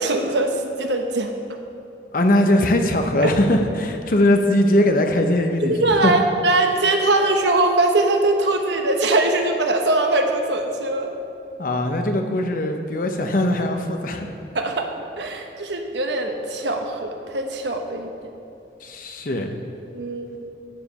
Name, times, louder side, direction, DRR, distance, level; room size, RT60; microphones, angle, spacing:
voice 1, 0.0-1.3 3.2-3.3 5.6-11.1 14.5-14.9 15.2-18.1 19.9-20.5, right 2 dB, 80° right, 4 dB, 1.0 m, -21 dB
voice 2, 2.1-6.1 11.6-14.3 18.8-19.5, left 1 dB, 50° left, 5 dB, 0.9 m, -20 dB
12.0 x 5.1 x 6.9 m, 2.8 s
head